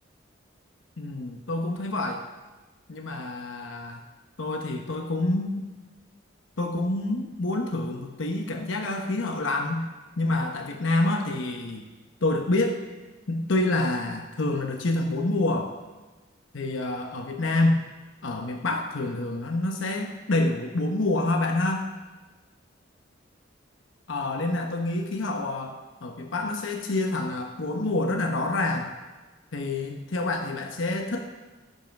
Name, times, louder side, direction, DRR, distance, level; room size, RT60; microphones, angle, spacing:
voice 1, 1.0-2.3 2.9-4.0 4.4-5.7 6.6-9.9 10.2-11.9 12.2-12.8 13.3-15.8 16.5-17.8 18.2-21.9 24.1-28.9 29.5-31.2, left 2 dB, 80° left, 3 dB, 0.9 m, -27 dB
14.5 x 5.6 x 5.8 m, 1.2 s
head